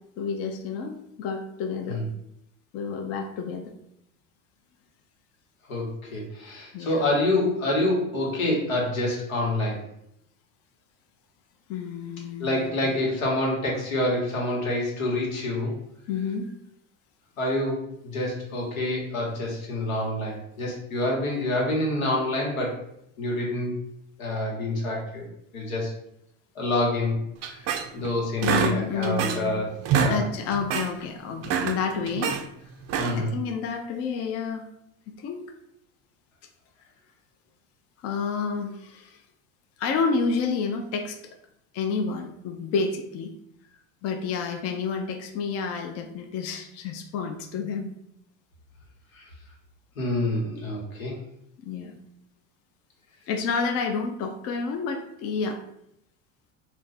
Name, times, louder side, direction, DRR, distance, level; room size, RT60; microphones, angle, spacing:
voice 1, 0.2-2.0 2.7-3.7 6.7-7.0 11.7-12.9 16.1-16.5 28.4-29.6 30.0-32.4 33.1-34.7 35.2-35.5 38.0-39.2 39.8-41.2 41.7-43.3 44.0-47.9 51.6-51.9 53.3-55.6, left 5 dB, 40° left, 5 dB, 0.4 m, -29 dB
voice 2, 5.7-9.8 12.4-15.8 17.4-22.8 23.2-23.8 24.2-25.3 25.5-25.9 26.5-27.2 27.5-30.2 33.0-33.4 49.1-49.3 50.0-51.2, left 1 dB, 85° left, -2 dB, 1.1 m, -27 dB
sound 1, 27.4-28.1 28.4-29.5 29.8-30.2 30.5-30.9 31.3-32.4 32.8-33.3, right 7 dB, 40° right, 0.4 m, -26 dB
2.5 x 2.3 x 3.9 m, 0.76 s
hypercardioid pair, 90°, 40 cm